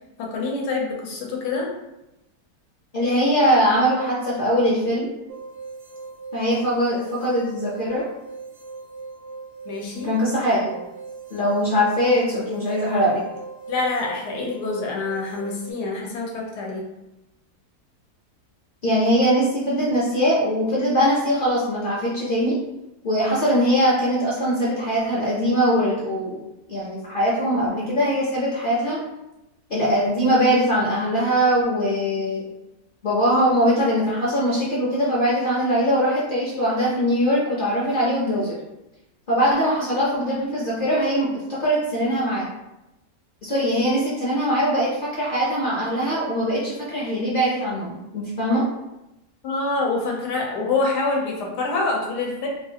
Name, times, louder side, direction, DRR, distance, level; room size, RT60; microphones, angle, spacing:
voice 1, 0.2-1.7 9.7-10.1 13.7-16.9 49.4-52.5, left 3 dB, 85° left, -1 dB, 1.3 m, -26 dB
voice 2, 2.9-5.1 6.3-8.0 10.0-10.7 11.3-13.2 18.8-22.6 23.0-26.4 26.7-29.0 29.7-32.4 33.0-38.5 39.3-42.5 43.4-48.6, equal, 45° left, -7 dB, 0.7 m, -21 dB
sound 1, 5.3-15.7, right 4 dB, 75° right, 0.5 m, -39 dB
3.6 x 2.4 x 2.7 m, 0.93 s
omnidirectional pair, 1.7 m